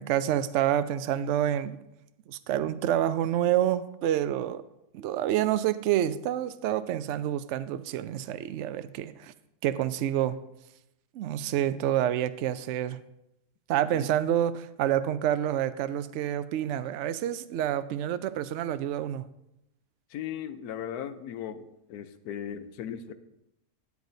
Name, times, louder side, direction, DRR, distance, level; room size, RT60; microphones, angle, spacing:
voice 1, 0.0-1.8 2.3-4.6 4.9-9.3 9.6-10.4 11.1-13.0 13.7-19.2, right 11 dB, 70° right, 13 dB, 0.7 m, -28 dB
voice 2, 20.1-23.1, left 9 dB, 75° left, 11 dB, 1.1 m, -37 dB
13.0 x 9.3 x 2.7 m, 0.84 s
omnidirectional pair, 1.6 m